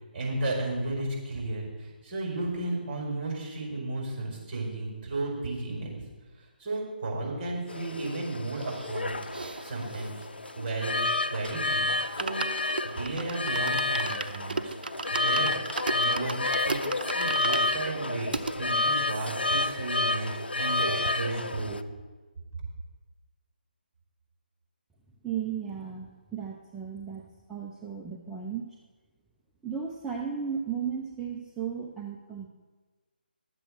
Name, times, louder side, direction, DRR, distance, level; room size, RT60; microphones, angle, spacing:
voice 1, 0.1-6.0 6.6-9.3 9.6-10.2 10.6-11.0 11.3-12.5 12.8-14.8 15.1-15.5 15.9-16.8 17.1-18.3 18.5-21.8, right 2 dB, 35° right, -2 dB, 4.7 m, -33 dB
sound 1, 7.7-21.8, left 2 dB, 80° left, 0.7 m, -30 dB
sound 2, 8.6-11.3 11.7-11.8 12.0-18.6 19.1-19.2 19.4-19.5 19.8-20.8 21.1-21.2, right 3 dB, 65° right, 0.7 m, -37 dB
voice 2, 25.2-28.8 29.6-32.5, right 7 dB, 5° right, -3 dB, 0.6 m, -35 dB
12.5 x 7.7 x 6.3 m, 1.3 s
figure-of-eight pair, 150°, 6 cm